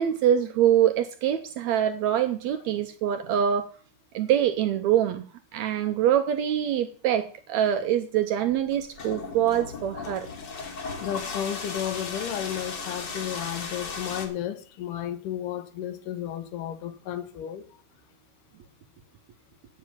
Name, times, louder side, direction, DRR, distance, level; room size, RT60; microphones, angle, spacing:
voice 1, 0.0-3.7 4.1-5.2 5.5-10.3, right 10 dB, 75° right, 1.7 m, -24 dB
sound 1, 8.5-14.3, left 4 dB, 45° left, 1.6 m, -36 dB
voice 2, 11.0-17.8, left 10 dB, 80° left, 2.5 m, -33 dB
9.4 x 7.5 x 7.1 m
omnidirectional pair, 3.8 m